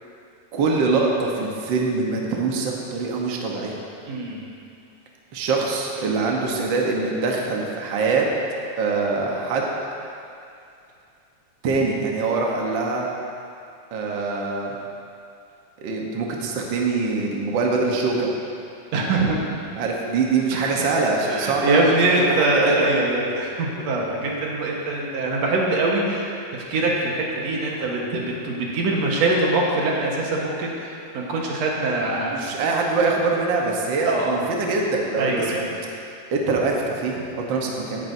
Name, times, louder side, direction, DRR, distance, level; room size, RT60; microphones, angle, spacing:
voice 1, 0.5-3.7 5.3-8.3 8.8-9.7 11.6-13.1 13.9-14.7 15.8-18.3 19.8-22.9 32.3-35.6 36.3-38.1, right 3 dB, 85° right, -1 dB, 1.0 m, -23 dB
voice 2, 4.1-4.4 18.9-19.4 20.5-20.8 21.2-32.5 34.1-34.5 35.2-35.7, right 2 dB, 60° right, -2 dB, 2.2 m, -23 dB
17.0 x 10.5 x 2.7 m, 2.5 s
omnidirectional pair, 3.9 m